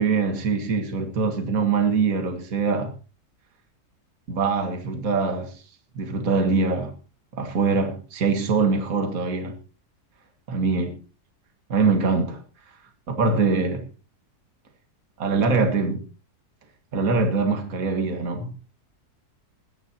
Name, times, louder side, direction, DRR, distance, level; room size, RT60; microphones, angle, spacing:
voice 1, 0.0-2.9 4.3-5.6 5.9-7.0 7.3-9.6 10.5-11.0 11.7-12.4 13.1-13.9 15.2-16.1 16.9-18.5, right 4 dB, 60° right, 2.1 m, -23 dB
26.0 x 10.5 x 2.9 m
omnidirectional pair, 1.7 m